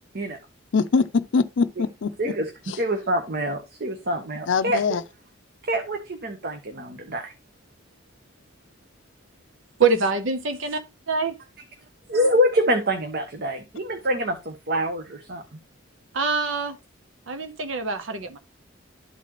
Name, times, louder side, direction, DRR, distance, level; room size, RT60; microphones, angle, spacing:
voice 1, 0.7-2.1 2.7-2.8 4.5-5.0, left 5 dB, 70° left, 0.5 m, -22 dB
voice 2, 2.2-2.5 2.8-4.8 5.6-7.3 12.1-15.4, equal, 55° right, 1.0 m, -25 dB
voice 3, 9.8-10.8 11.1-11.3 16.1-16.8 17.3-18.4, right 4 dB, 85° right, 0.8 m, -24 dB
12.5 x 4.1 x 3.0 m
head